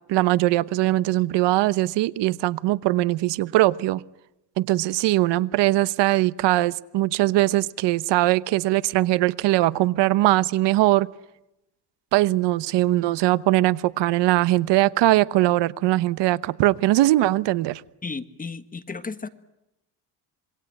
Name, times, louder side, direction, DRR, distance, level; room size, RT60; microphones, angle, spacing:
voice 1, 0.1-4.0 4.6-11.1 12.1-17.8, right 16 dB, 85° right, 1.1 m, -21 dB
voice 2, 18.0-19.3, left 4 dB, 20° left, 1.6 m, -34 dB
27.0 x 23.0 x 9.1 m
cardioid pair, 135°, 41 cm